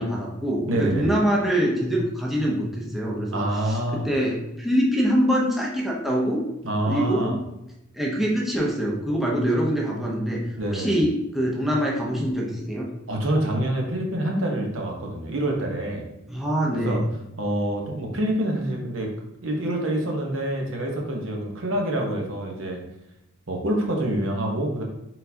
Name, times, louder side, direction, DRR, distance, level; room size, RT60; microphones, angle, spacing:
voice 1, 0.0-6.4 6.9-7.4 7.9-12.9 16.3-17.0, equal, ahead, -4 dB, 0.7 m, -24 dB
voice 2, 0.7-1.1 3.3-4.1 6.6-7.4 10.6-11.0 13.1-16.0 16.7-17.0 17.4-19.1 19.4-22.8 23.5-24.8, right 1 dB, 75° right, 1 dB, 0.9 m, -26 dB
4.4 x 3.8 x 2.7 m, 0.88 s
head